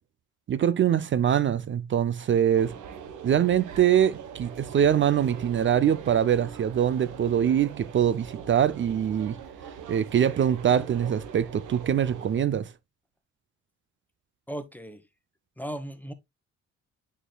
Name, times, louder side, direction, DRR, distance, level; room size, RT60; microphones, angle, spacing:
voice 1, 0.5-2.7 3.2-9.4 9.9-12.7, right 9 dB, 40° right, 0.5 m, -23 dB
sound 1, 2.5-12.4, right 7 dB, 80° right, 1.1 m, -42 dB
voice 2, 14.5-15.0 15.6-16.1, right 1 dB, 5° left, 1.1 m, -36 dB
9.9 x 4.5 x 2.2 m
cardioid pair, 90°, 30 cm